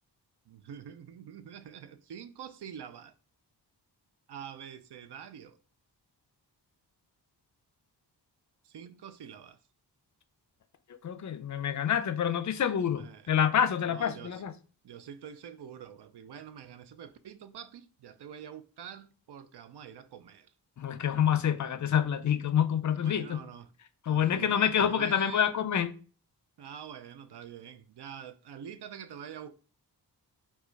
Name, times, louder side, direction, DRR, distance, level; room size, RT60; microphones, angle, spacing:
voice 1, 0.5-3.1 4.3-5.6 8.6-9.6 13.0-13.2 13.9-14.4 14.8-20.5 22.9-23.7 24.1-25.5 26.6-29.6, right 8 dB, 75° right, 0.5 m, -46 dB
voice 2, 11.0-14.5 20.8-23.4 24.0-26.0, left 8 dB, 45° left, 0.4 m, -27 dB
4.6 x 2.3 x 4.5 m
wide cardioid pair, 150°, 41 cm